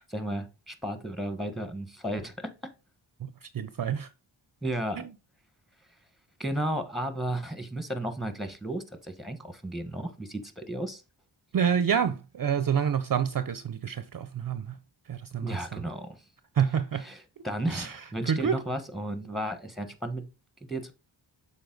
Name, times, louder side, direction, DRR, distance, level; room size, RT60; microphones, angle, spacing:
voice 1, 0.1-2.3 4.6-5.1 6.4-11.0 15.4-16.2 17.0-20.2 20.6-20.9, right 1 dB, ahead, 1.2 m, -33 dB
voice 2, 3.5-4.1 5.0-5.1 11.5-14.6 15.1-15.8 16.6-17.0 17.4-18.6, right 7 dB, 45° right, 0.6 m, -28 dB
7.0 x 4.2 x 3.9 m
cardioid pair, 75°, 47 cm